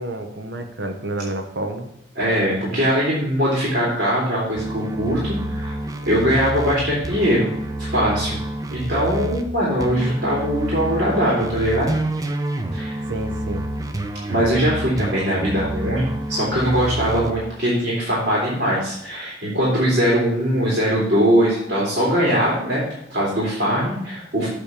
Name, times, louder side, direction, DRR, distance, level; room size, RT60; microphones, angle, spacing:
voice 1, 0.0-1.9 13.1-13.6, right 1 dB, 75° right, 5 dB, 1.1 m, -29 dB
voice 2, 2.2-5.8 6.1-7.5 7.9-8.4 8.7-11.9 12.7-12.9 14.3-22.8 23.1-24.5, equal, 60° right, -6 dB, 2.8 m, -21 dB
sound 1, 4.5-9.5 9.8-17.3, right 1 dB, 20° right, 0.7 m, -28 dB
8.4 x 3.5 x 6.6 m, 0.79 s
head